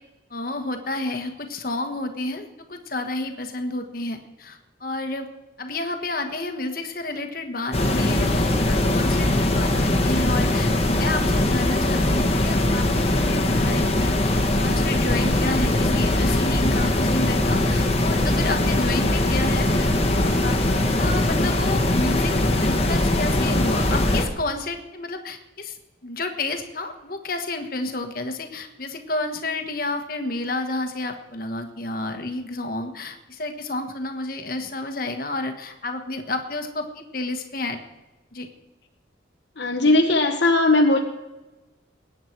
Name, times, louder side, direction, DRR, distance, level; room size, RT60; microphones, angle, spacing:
voice 1, 0.3-5.3 5.6-12.8 13.2-20.7 21.0-22.3 22.6-37.8 38.3-38.5, left 2 dB, 50° left, 6 dB, 1.4 m, -30 dB
sound 1, 7.7-24.2, left 1 dB, 30° left, 1.4 m, -21 dB
voice 2, 39.6-41.0, left 2 dB, 65° left, 3 dB, 1.1 m, -18 dB
20.5 x 9.2 x 4.6 m, 1.1 s
head